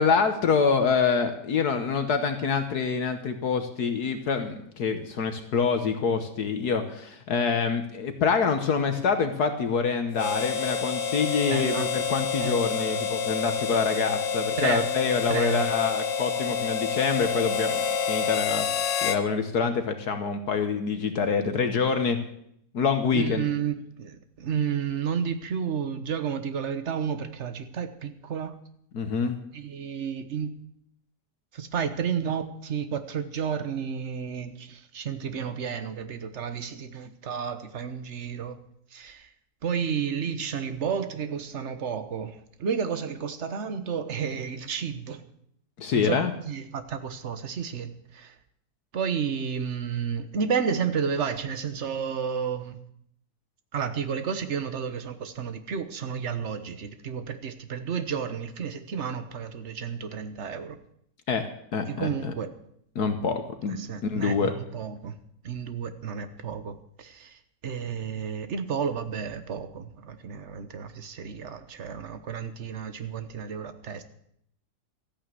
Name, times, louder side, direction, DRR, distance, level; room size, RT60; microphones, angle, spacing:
voice 1, 0.0-18.7 19.0-22.2 22.7-23.5 28.9-29.4 45.8-46.3 61.3-61.5 61.7-62.3 62.9-64.5, left 5 dB, 65° left, 7 dB, 1.6 m, -26 dB
Harmonica, 10.1-19.2, left 6 dB, 80° left, 1.5 m, -28 dB
voice 2, 11.5-11.9 12.4-13.0 14.6-14.8 15.3-15.7 23.1-28.6 29.5-30.6 31.5-38.6 38.9-39.3 39.6-45.2 45.9-48.4 48.9-52.8 53.7-60.8 61.9-62.5 63.7-65.1 65.4-74.0, right 7 dB, 45° right, 10 dB, 1.3 m, -31 dB
13.5 x 9.4 x 7.6 m, 0.71 s
omnidirectional pair, 1.9 m